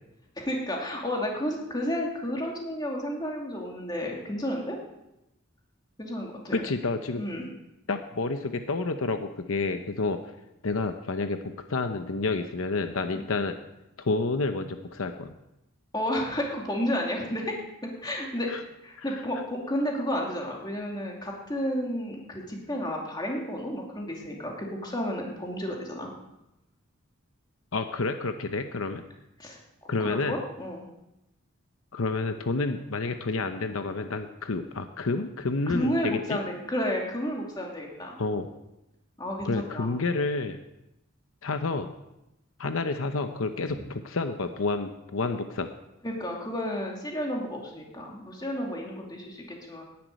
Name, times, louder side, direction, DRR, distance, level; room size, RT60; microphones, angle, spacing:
voice 1, 0.4-4.8 6.0-6.7 7.2-7.5 13.1-13.3 15.9-17.6 17.8-18.5 18.8-26.1 29.4-29.6 30.0-30.9 35.7-38.2 39.2-39.9 43.7-43.8 46.0-49.8, equal, 20° left, -1 dB, 2.7 m, -32 dB
voice 2, 6.5-7.2 7.9-10.2 10.6-13.6 14.0-15.3 18.5-18.6 27.7-29.0 29.9-30.4 31.9-36.4 38.2-38.5 39.4-40.6 41.4-41.9 42.6-45.7, left 3 dB, 75° left, 8 dB, 0.8 m, -29 dB
10.5 x 9.6 x 9.3 m, 0.90 s
head